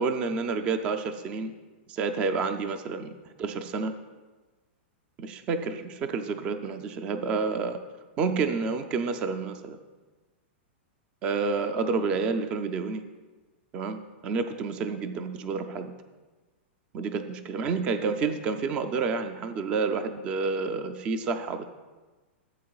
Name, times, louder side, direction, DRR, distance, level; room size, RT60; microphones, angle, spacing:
voice 1, 0.0-1.5 1.9-3.9 5.2-7.8 8.2-9.8 11.2-13.0 13.7-15.9 16.9-21.6, right 4 dB, 15° right, 8 dB, 0.4 m, -29 dB
15.0 x 8.3 x 2.3 m, 1.3 s
supercardioid pair, 180°, 6 cm